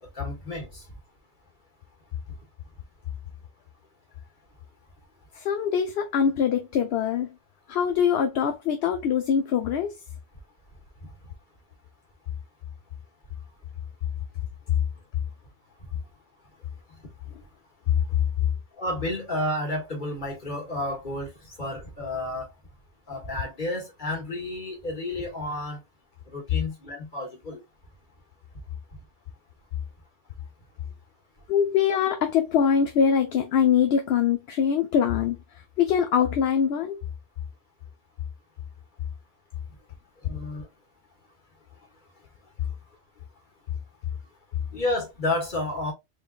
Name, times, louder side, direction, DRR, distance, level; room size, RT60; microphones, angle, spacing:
voice 1, 0.0-0.9 11.0-11.1 16.9-17.0 17.3-17.5 18.8-22.5 23.1-25.8 26.3-27.6 40.2-40.7 44.7-45.9, left 1 dB, 45° left, 1.6 m, -31 dB
voice 2, 5.3-7.3 7.7-10.0 31.5-37.0, left 7 dB, 65° left, 0.7 m, -23 dB
3.7 x 3.6 x 2.4 m
omnidirectional pair, 1.2 m